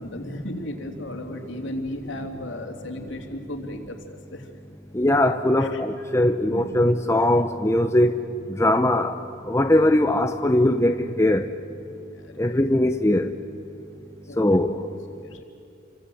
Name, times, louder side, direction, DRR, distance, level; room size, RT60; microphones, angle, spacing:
voice 1, 0.0-4.5 5.6-5.8 6.5-6.6 11.9-12.6 14.3-14.4 15.3-15.4, left 1 dB, 65° left, 3 dB, 3.2 m, -35 dB
voice 2, 3.0-3.5 4.9-11.5 12.4-13.4 14.3-14.9, left 1 dB, 15° left, 6 dB, 0.8 m, -21 dB
29.5 x 25.5 x 7.9 m, 2.7 s
head